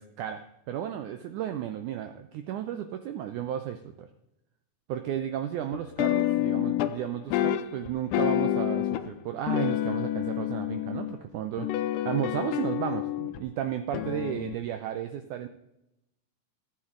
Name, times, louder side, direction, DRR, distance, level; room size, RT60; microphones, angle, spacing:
voice 1, 0.0-4.1 4.9-15.5, right 10 dB, 85° right, 8 dB, 1.7 m, -33 dB
sound 1, 5.7-7.0 7.3-9.1 9.5-11.2 11.6-13.4 13.9-14.6, left 13 dB, 80° left, 2.0 m, -28 dB
14.0 x 8.8 x 3.8 m, 0.88 s
omnidirectional pair, 4.3 m